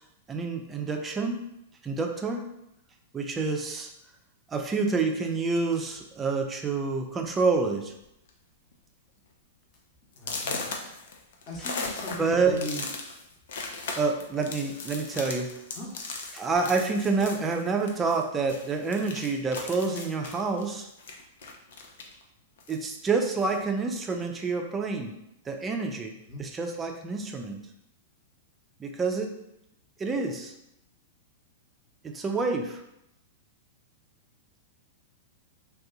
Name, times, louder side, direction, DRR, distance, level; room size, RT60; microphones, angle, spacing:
voice 1, 0.3-1.4 1.8-2.5 3.1-3.9 4.5-7.9 12.2-12.6 14.0-15.6 16.3-20.9 22.7-25.2 25.5-26.1 26.4-27.6 28.8-29.4 30.0-30.5 32.0-32.8, right 4 dB, 20° right, 3 dB, 0.4 m, -28 dB
sound 1, 5.6-6.0 6.8-6.9 7.3-7.5 7.8-8.3 8.7-8.8 9.3-9.4 10.2-18.2 18.5-22.2 22.6-23.6, left 4 dB, 60° left, 0.4 m, -38 dB
voice 2, 10.1-10.6 11.0-11.1 11.5-12.9 15.7-15.9 26.3-26.4, left 1 dB, 35° left, -2 dB, 0.9 m, -38 dB
2.6 x 2.3 x 3.7 m, 0.82 s
figure-of-eight pair, 100°, 0 cm